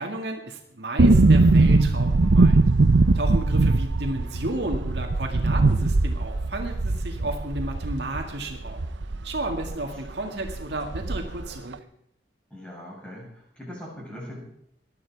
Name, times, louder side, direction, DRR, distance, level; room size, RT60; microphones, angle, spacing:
voice 1, 0.0-2.6 3.1-8.8 9.2-11.8, right 1 dB, 65° right, 3 dB, 2.1 m, -32 dB
sound 1, 1.0-9.8 10.1-10.2 10.4-11.5 11.7-11.8, right 2 dB, 90° right, 0.7 m, -20 dB
voice 2, 9.6-9.9 12.5-14.4, left 1 dB, 5° left, -4 dB, 7.6 m, -41 dB
19.5 x 12.5 x 4.8 m, 0.74 s
head